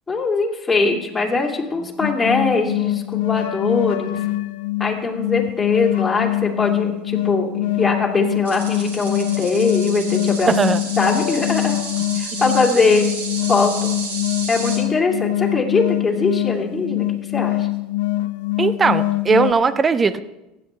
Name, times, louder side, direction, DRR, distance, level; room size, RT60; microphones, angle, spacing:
voice 1, 0.1-4.2 4.8-10.5 11.0-11.8 12.2-13.1 13.5-13.9 14.5-17.1 17.3-17.6, left 3 dB, 15° left, -1 dB, 2.7 m, -21 dB
sound 1, 2.0-19.5, left 17 dB, 75° left, 0.5 m, -23 dB
sound 2, 8.4-14.8, right 4 dB, 80° right, 2.6 m, -32 dB
voice 2, 10.5-10.8 18.6-20.2, right 4 dB, 25° right, 14 dB, 0.7 m, -18 dB
15.5 x 9.7 x 3.3 m, 0.98 s
hypercardioid pair, 80°, 0 cm